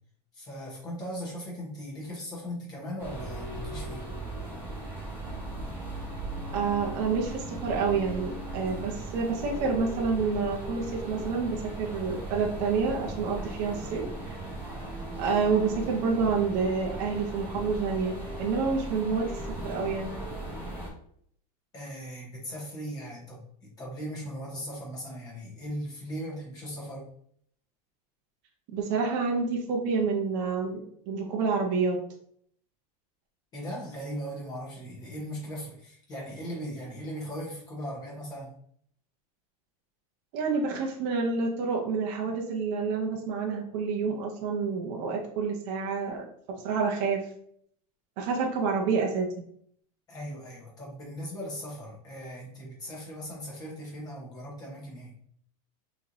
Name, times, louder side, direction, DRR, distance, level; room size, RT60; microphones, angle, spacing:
voice 1, 0.3-4.0 21.7-27.1 33.5-38.5 50.1-55.1, equal, 20° left, -3 dB, 1.0 m, -38 dB
sound 1, 3.0-20.9, right 2 dB, 10° right, 0.9 m, -38 dB
voice 2, 6.5-14.0 15.2-19.2 19.6-20.1 28.7-32.0 40.3-46.3 46.6-47.2 48.2-49.3, right 5 dB, 35° right, -1 dB, 0.5 m, -28 dB
4.3 x 3.0 x 2.6 m, 0.64 s
supercardioid pair, 175°, 20 cm